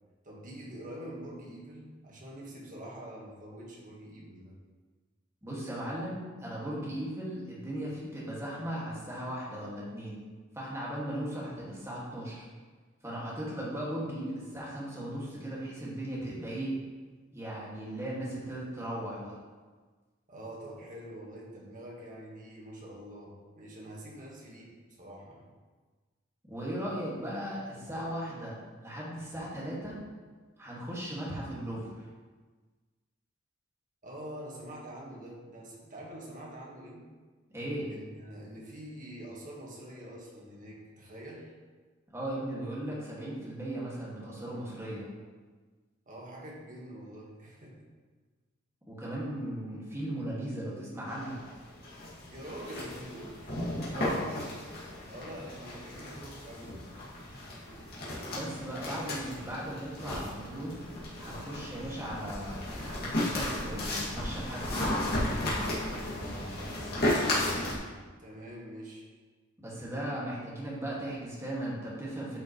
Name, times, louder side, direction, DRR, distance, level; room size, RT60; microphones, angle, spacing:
voice 1, 0.2-4.5 20.3-25.5 34.0-37.0 37.9-41.5 46.1-47.9 52.3-53.5 55.1-56.8 58.9-59.1 68.2-69.1, right 1 dB, 40° right, -3 dB, 1.7 m, -45 dB
voice 2, 5.4-10.2 10.5-12.5 13.0-16.8 17.3-19.4 26.5-30.0 30.6-31.9 37.5-37.9 42.1-45.1 48.9-51.4 53.9-54.3 58.3-60.9 61.2-65.7 69.6-72.4, right 1 dB, 15° right, -7 dB, 2.2 m, -37 dB
sound 1, 51.1-67.8, left 1 dB, 50° left, 2.5 m, -35 dB
9.7 x 5.7 x 3.2 m, 1.4 s
head